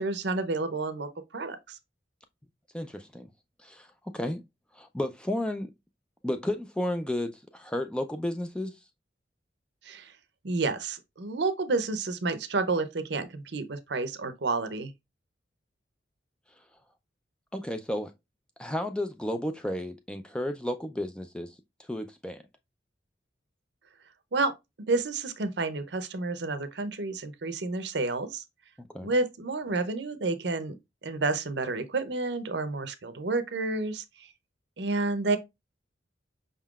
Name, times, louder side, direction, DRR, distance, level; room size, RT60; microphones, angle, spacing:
voice 1, 0.0-1.8 9.8-10.1 10.4-14.9 24.3-24.5 24.9-28.4 29.0-30.7 31.0-34.3 34.8-35.4, right 3 dB, 70° right, 0.7 m, -30 dB
voice 2, 2.7-3.3 3.6-4.4 4.7-5.7 6.2-8.7 17.5-18.1 18.6-21.6 21.9-22.4 28.8-29.1, left 1 dB, 5° left, 0.4 m, -32 dB
5.4 x 3.7 x 2.3 m
head